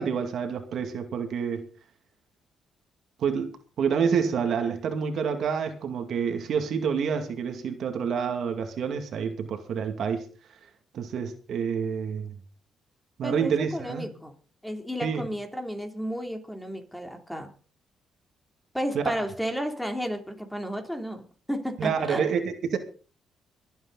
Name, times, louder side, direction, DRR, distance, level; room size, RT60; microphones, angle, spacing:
voice 1, 0.0-1.7 3.2-10.2 10.9-12.4 13.2-14.1 15.0-15.2 18.9-19.1 21.8-22.8, right 6 dB, 65° right, 2.3 m, -28 dB
voice 2, 13.2-14.3 14.6-17.5 18.7-22.3, equal, 5° left, 3.1 m, -33 dB
24.5 x 8.8 x 4.0 m
cardioid pair, 90°, 0 cm